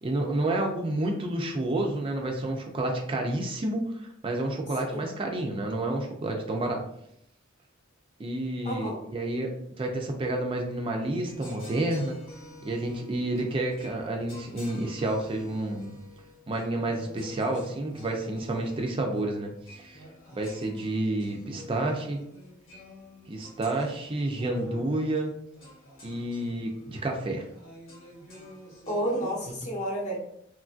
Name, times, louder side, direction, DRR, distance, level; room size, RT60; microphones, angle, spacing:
voice 1, 0.0-6.8 8.2-12.2 12.6-16.0 16.5-20.0 20.3-22.2 23.3-25.3 26.0-27.4, right 1 dB, 30° right, 2 dB, 0.4 m, -30 dB
voice 2, 8.6-9.0 28.9-30.2, equal, 40° left, -2 dB, 0.8 m, -30 dB
sound 1, 11.2-29.5, left 1 dB, 80° left, 1.0 m, -48 dB
3.0 x 2.5 x 2.3 m, 0.73 s
head